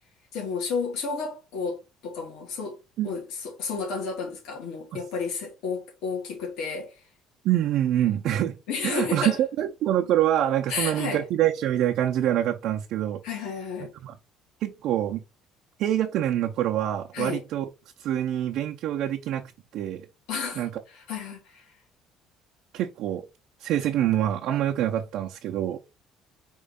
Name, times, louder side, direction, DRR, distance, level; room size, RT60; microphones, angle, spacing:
voice 1, 0.3-2.8 3.0-7.0 8.7-9.4 10.7-11.2 13.2-13.9 17.1-17.4 20.3-21.6, left 5 dB, 75° left, 2.5 m, -32 dB
voice 2, 7.4-8.6 8.8-13.2 14.0-14.2 14.6-15.2 15.8-17.7 18.0-19.4 19.7-20.1 20.6-20.7 22.7-23.2 23.6-25.8, right 12 dB, 60° right, 0.6 m, -25 dB
4.5 x 3.1 x 3.8 m
cardioid pair, 145°, 0 cm